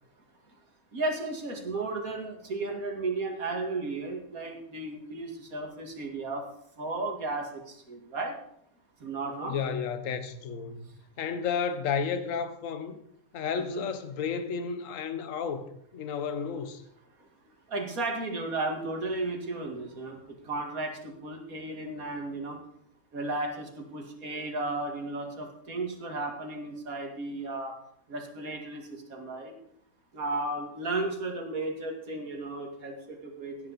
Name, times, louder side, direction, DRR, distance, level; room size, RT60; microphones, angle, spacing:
voice 1, 0.9-6.4 6.8-8.3 9.0-9.6 13.7-13.9 17.7-22.6 23.1-27.7 28.1-29.5 30.1-33.7, right 2 dB, 65° right, 2.6 m, -34 dB
voice 2, 9.5-10.9 11.2-13.0 13.3-16.8, left 6 dB, 60° left, 1.4 m, -32 dB
17.0 x 10.5 x 4.1 m
omnidirectional pair, 1.6 m